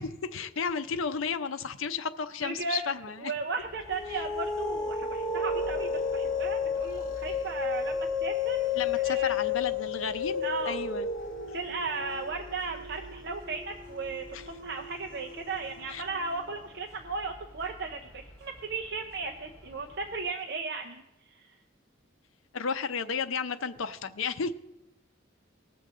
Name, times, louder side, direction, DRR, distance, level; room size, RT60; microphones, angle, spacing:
voice 1, 0.0-3.3 8.8-11.1 14.3-14.4 15.9-16.0 22.5-24.5, left 5 dB, 85° left, 11 dB, 0.6 m, -33 dB
voice 2, 2.4-2.8 3.2-8.7 8.9-9.4 10.4-10.8 11.5-21.0 21.3-21.6, right 4 dB, 55° right, 3 dB, 0.7 m, -36 dB
sound 1, 3.6-20.2, equal, 15° left, 2.0 m, -52 dB
sound 2, 3.8-16.6, left 5 dB, 45° left, 1.1 m, -33 dB
19.5 x 7.0 x 3.7 m, 0.92 s
head